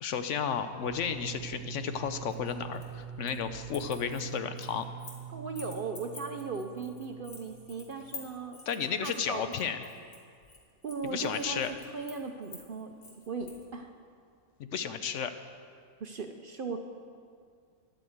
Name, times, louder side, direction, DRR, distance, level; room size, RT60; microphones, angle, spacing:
voice 1, 0.0-4.8 8.7-9.8 11.1-11.7 14.6-15.3, left 7 dB, 70° left, 9 dB, 0.9 m, -33 dB
sound 1, 0.8-8.5, right 9 dB, 90° right, 0.4 m, -44 dB
sound 2, 2.3-3.4 3.7-5.2 5.6-13.6, left 3 dB, 85° left, 2.3 m, -49 dB
voice 2, 5.3-8.6 9.0-9.5 10.8-11.7 11.9-12.9 13.3-13.9 16.0-16.8, right 4 dB, 50° right, 5 dB, 0.7 m, -37 dB
10.5 x 9.2 x 7.9 m, 2.2 s
omnidirectional pair, 1.4 m